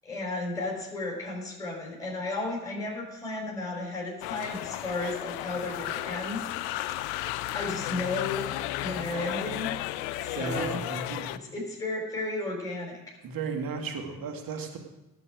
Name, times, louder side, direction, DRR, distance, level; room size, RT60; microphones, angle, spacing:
voice 1, 0.0-7.0 7.5-8.5 8.8-9.7 10.3-10.8 11.4-13.2, left 2 dB, 5° left, -3 dB, 4.8 m, -34 dB
sound 1, 4.2-11.4, left 15 dB, 60° left, 0.6 m, -34 dB
voice 2, 10.4-11.3 13.2-14.8, right 4 dB, 45° right, 4 dB, 2.1 m, -34 dB
17.0 x 7.7 x 4.9 m, 1.0 s
figure-of-eight pair, 50°, 48 cm